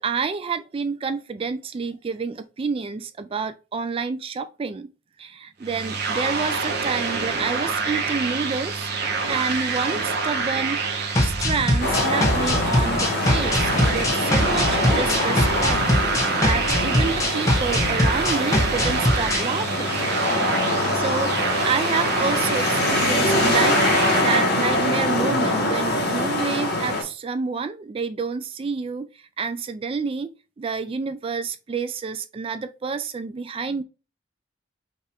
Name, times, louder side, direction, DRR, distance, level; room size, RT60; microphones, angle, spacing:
voice 1, 0.0-4.9 5.2-8.9 9.3-10.9 11.2-15.8 16.4-20.0 20.9-30.3 30.6-33.8, right 5 dB, 30° right, 0.3 m, -28 dB
sound 1, 5.6-24.2, right 4 dB, 60° right, 1.0 m, -27 dB
sound 2, 11.1-19.4, left 1 dB, 20° left, 1.0 m, -22 dB
sound 3, 11.8-27.0, left 1 dB, 60° left, 1.5 m, -24 dB
5.4 x 2.5 x 3.3 m
head